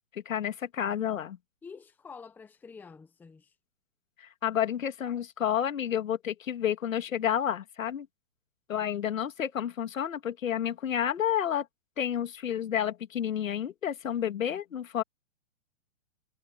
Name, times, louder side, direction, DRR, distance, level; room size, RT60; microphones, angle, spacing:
voice 1, 0.1-1.4 4.2-8.1 8.7-11.7 12.0-15.0, left 9 dB, 85° left, 2.5 m, -30 dB
voice 2, 1.6-3.5 8.7-8.9, left 5 dB, 5° left, 0.9 m, -48 dB
hypercardioid pair, 160°, 39 cm